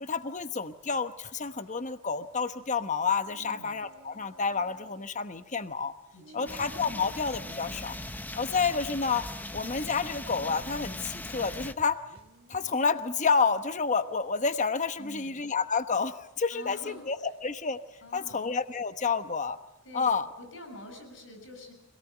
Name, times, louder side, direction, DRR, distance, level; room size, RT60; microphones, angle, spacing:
voice 1, 0.0-5.9 6.3-7.9 8.3-9.3 9.5-12.0 12.5-17.8 18.1-19.6 19.9-20.3, left 5 dB, 40° left, 10 dB, 1.1 m, -29 dB
sound 1, 3.2-5.2 6.2-8.1 11.9-14.2, right 2 dB, 60° right, 3.5 m, -56 dB
voice 2, 3.4-3.7 6.1-6.6 15.0-15.5 16.5-17.1 18.0-18.5 19.8-20.1 20.4-21.7, left 1 dB, 70° left, 7 dB, 7.3 m, -46 dB
sound 2, 6.5-11.7, left 1 dB, 10° left, 1.0 m, -40 dB
sound 3, 6.6-6.7 7.1-8.2 8.6-9.8 10.1-12.6, right 1 dB, 30° right, 2.6 m, -55 dB
25.5 x 18.0 x 9.0 m, 0.93 s
head